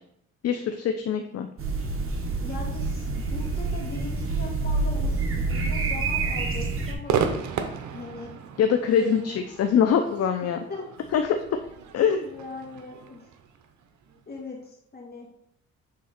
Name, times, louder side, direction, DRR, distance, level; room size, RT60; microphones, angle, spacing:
voice 1, 0.4-1.5 8.6-10.6 11.1-11.3 11.9-12.3, left 7 dB, 55° left, 6 dB, 0.6 m, -23 dB
sound 1, 1.6-6.9, right 3 dB, 45° right, 1.4 m, -27 dB
voice 2, 2.4-7.6 7.9-8.3 9.0-9.4 10.7-10.8 12.1-13.2 14.3-15.3, left 3 dB, 30° left, -1 dB, 2.2 m, -39 dB
Crowd / Fireworks, 7.1-14.4, right 7 dB, 70° right, 0.9 m, -34 dB
7.4 x 3.6 x 4.3 m, 0.74 s
cardioid pair, 90°, 30 cm